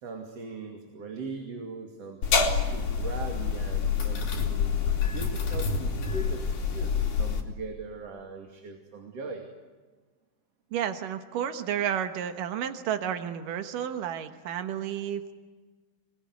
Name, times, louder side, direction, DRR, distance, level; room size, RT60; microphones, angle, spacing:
voice 1, 0.0-4.7 5.1-9.5, right 4 dB, 50° right, 3 dB, 3.5 m, -40 dB
sound 1, 2.2-7.4, left 5 dB, 70° left, 4.4 m, -27 dB
voice 2, 10.7-15.3, right 9 dB, 90° right, 8 dB, 2.9 m, -31 dB
27.0 x 21.5 x 9.7 m, 1.3 s
omnidirectional pair, 3.7 m